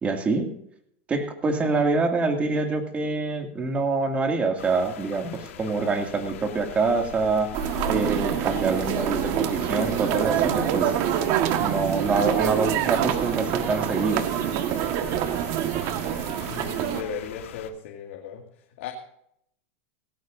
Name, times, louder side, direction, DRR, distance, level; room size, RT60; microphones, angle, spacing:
voice 1, 0.0-0.5 1.1-7.5 7.9-11.0 11.6-14.2, right 3 dB, 20° right, 4 dB, 2.3 m, -25 dB
sound 1, 4.6-17.7, left 9 dB, 90° left, 1.6 m, -42 dB
sound 2, 7.5-17.0, right 10 dB, 50° right, 1.5 m, -26 dB
voice 2, 16.5-18.4 18.8-18.9, left 7 dB, 70° left, 2 dB, 2.1 m, -36 dB
17.5 x 16.5 x 2.7 m, 0.71 s
supercardioid pair, 145°, 7 cm